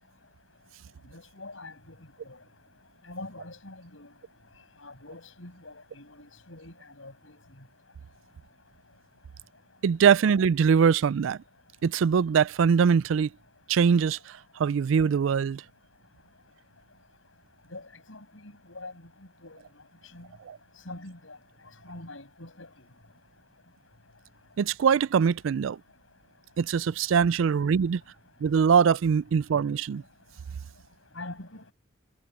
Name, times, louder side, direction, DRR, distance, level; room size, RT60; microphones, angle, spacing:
voice 1, 1.1-1.7 2.3-2.4 3.1-4.1 4.8-7.4 17.7-18.9 19.4-19.6 20.1-20.3 20.9-21.4 21.9-22.7 31.2-31.7, left 2 dB, 80° left, 6.9 m, -44 dB
voice 2, 9.8-11.4 11.8-13.3 13.7-15.6 20.5-20.6 24.6-25.8 26.6-28.0 28.4-30.0, right 6 dB, 80° right, 0.4 m, -22 dB
head